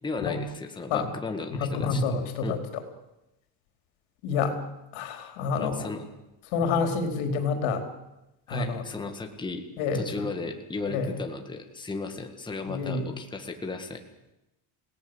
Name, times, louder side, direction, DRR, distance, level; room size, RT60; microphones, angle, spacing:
voice 1, 0.0-2.1 2.4-2.6 5.6-6.0 6.6-6.8 8.5-9.7 9.9-14.0, left 3 dB, 10° left, 4 dB, 1.8 m, -35 dB
voice 2, 1.6-2.8 4.2-4.6 4.9-5.9 6.5-7.8 8.5-8.8 9.8-10.3 10.9-11.1 12.7-13.1, left 5 dB, 85° left, 5 dB, 4.4 m, -28 dB
29.0 x 18.0 x 8.0 m, 0.94 s
cardioid pair, 165°, 47 cm